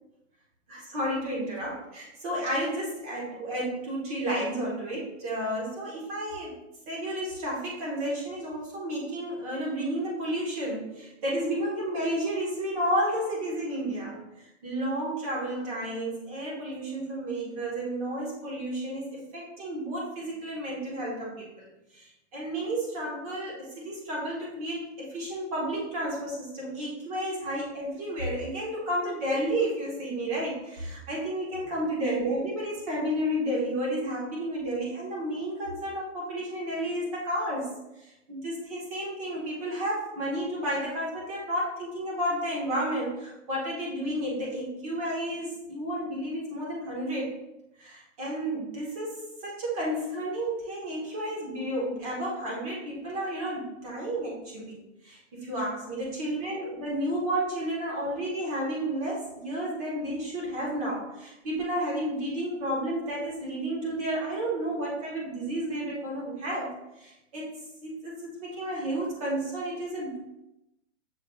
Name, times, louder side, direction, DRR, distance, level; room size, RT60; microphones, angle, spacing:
voice 1, 0.7-6.6 6.9-37.7 38.0-47.3 47.8-49.1 49.4-67.5 67.8-70.2, right 1 dB, 30° right, -4 dB, 1.2 m, -32 dB
6.5 x 3.3 x 2.3 m, 0.91 s
hypercardioid pair, 170°, 37 cm